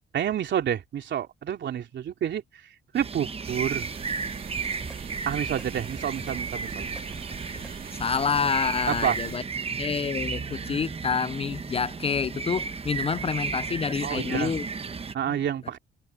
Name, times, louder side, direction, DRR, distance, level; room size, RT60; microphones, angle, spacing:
voice 1, 0.1-2.4 2.9-3.9 5.3-6.9 8.9-9.2 14.0-14.5 15.1-15.8, right 9 dB, 65° right, 3.4 m, -29 dB
sound 1, 2.9-15.1, right 5 dB, 30° right, 1.2 m, -34 dB
sound 2, 3.4-9.4, right 7 dB, 50° right, 2.0 m, -42 dB
sound 3, 4.6-5.0 5.3-6.4 6.7-7.7, right 1 dB, 5° right, 3.4 m, -45 dB
voice 2, 8.0-9.4 9.8-14.6, left 6 dB, 30° left, 0.4 m, -28 dB
cardioid pair, 90°, 20 cm